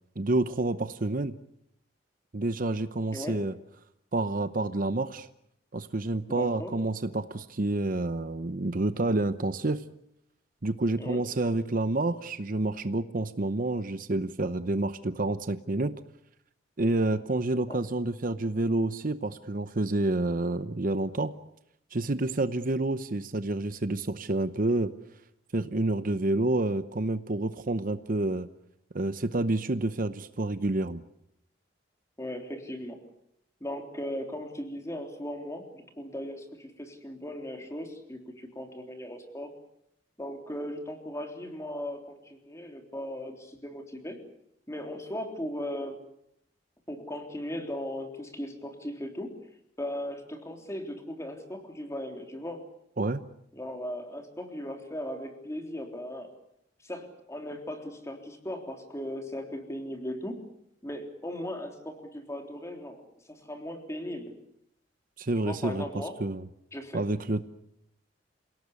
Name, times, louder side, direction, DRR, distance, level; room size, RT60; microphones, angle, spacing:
voice 1, 0.2-1.3 2.3-3.5 4.1-5.3 5.7-9.8 10.6-15.9 16.8-21.3 21.9-24.9 25.5-28.5 28.9-31.0 53.0-53.2 65.2-66.5 66.9-67.5, right 2 dB, 50° right, 12 dB, 0.8 m, -28 dB
voice 2, 6.3-6.7 11.0-11.2 17.7-17.8 32.2-33.0 33.6-39.5 40.2-44.2 44.7-46.0 46.9-49.3 49.8-52.6 53.5-56.3 56.8-60.4 60.8-63.0 63.3-64.3 65.4-66.2 66.7-67.0, left 1 dB, 15° left, 4 dB, 3.5 m, -37 dB
28.0 x 17.5 x 8.3 m, 0.77 s
head